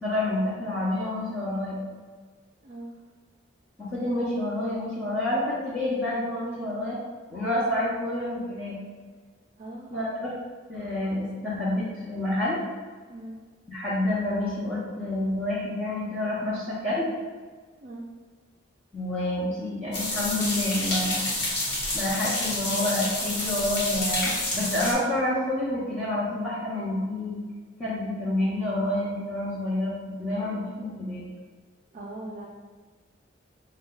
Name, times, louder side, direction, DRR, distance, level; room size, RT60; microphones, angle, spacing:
voice 1, 0.0-1.8 3.8-7.0 7.3-8.8 9.9-10.3 10.7-12.6 13.7-17.1 18.9-21.4 21.9-27.4 27.8-31.3, left 1 dB, 5° left, -12 dB, 0.9 m, -28 dB
voice 2, 2.6-3.0 9.6-10.0 13.1-13.3 17.8-18.0 31.9-32.5, right 1 dB, 40° right, -3 dB, 0.4 m, -40 dB
sound 1, 19.9-24.9, left 1 dB, 55° left, 1.1 m, -29 dB
5.3 x 2.3 x 3.8 m, 1.5 s
head